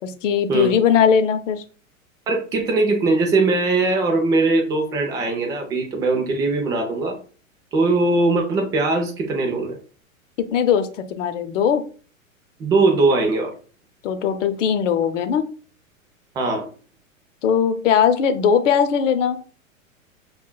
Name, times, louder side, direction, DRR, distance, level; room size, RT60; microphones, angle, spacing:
voice 1, 0.0-1.6 10.5-11.8 14.0-15.4 17.4-19.4, left 7 dB, 65° left, 8 dB, 0.7 m, -19 dB
voice 2, 2.3-7.2 7.7-9.8 12.6-13.5 16.4-16.7, right 3 dB, 10° right, 3 dB, 0.3 m, -20 dB
5.4 x 2.3 x 2.2 m, 0.39 s
hypercardioid pair, 105°, 41 cm